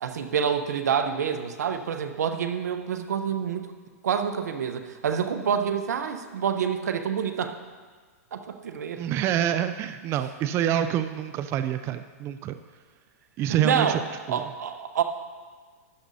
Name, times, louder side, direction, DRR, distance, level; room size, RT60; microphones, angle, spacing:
voice 1, 0.0-3.7 4.0-7.6 8.3-9.0 13.5-14.0 14.3-15.0, right 7 dB, 85° right, 8 dB, 0.8 m, -27 dB
voice 2, 9.0-12.6 13.4-14.0 14.3-14.5, right 10 dB, 30° right, 10 dB, 0.4 m, -27 dB
13.0 x 9.8 x 2.7 m, 1.5 s
hypercardioid pair, 130°, 9 cm